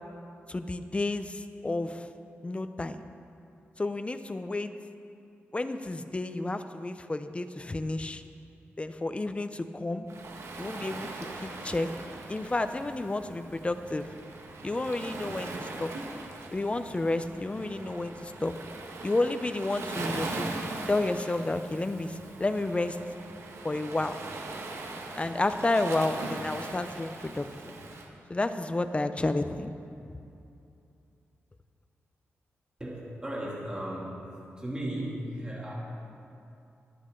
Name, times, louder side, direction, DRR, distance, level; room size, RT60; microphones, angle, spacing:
voice 1, 0.5-2.1 2.4-3.0 3.8-4.7 5.5-8.2 8.8-10.1 10.6-11.1 11.4-11.9 12.3-14.1 14.6-15.9 16.5-18.6 19.0-20.5 20.9-23.0 23.6-24.2 25.2-27.5 28.3-29.7 30.0-30.2, left 2 dB, 25° left, 9 dB, 0.7 m, -31 dB
Waves surf, 10.1-28.1, right 2 dB, 75° right, 1.5 m, -40 dB
voice 2, 32.8-34.2 34.6-35.7, right 1 dB, 20° right, -6 dB, 2.8 m, -35 dB
22.0 x 8.7 x 3.9 m, 2.7 s
cardioid pair, 75°, 5 cm